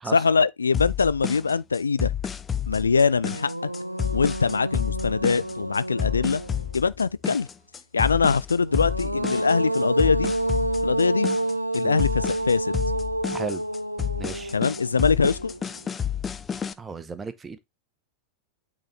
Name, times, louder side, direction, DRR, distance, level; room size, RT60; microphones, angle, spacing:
voice 1, 0.1-2.1 2.7-3.7 4.1-6.4 6.7-7.5 7.9-10.3 10.8-11.3 11.7-12.8 14.5-15.5, left 5 dB, 75° left, 0.3 m, -23 dB
sound 1, 0.7-16.7, left 8 dB, 20° left, 0.5 m, -30 dB
sound 2, 2.7-2.8 3.2-6.9 8.5-15.8, right 1 dB, 85° right, 0.4 m, -29 dB
voice 2, 13.3-13.6 14.2-14.5 16.8-17.6, right 4 dB, 15° right, 1.0 m, -35 dB
8.8 x 4.0 x 3.2 m
figure-of-eight pair, 90°, 0 cm